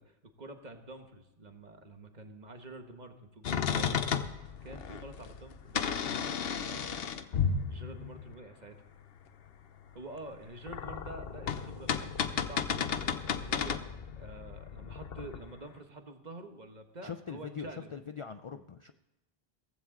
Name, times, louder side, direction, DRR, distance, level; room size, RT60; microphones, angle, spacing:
voice 1, 0.0-4.0 4.6-7.0 7.7-8.8 9.9-13.0 13.3-13.8 14.2-17.9, right 2 dB, 45° right, 6 dB, 1.3 m, -48 dB
sound 1, 3.4-8.3 10.3-15.5, left 7 dB, 70° left, 1.0 m, -33 dB
voice 2, 17.0-18.9, left 6 dB, 45° left, 9 dB, 0.4 m, -42 dB
16.0 x 15.0 x 3.8 m, 0.99 s
omnidirectional pair, 1.0 m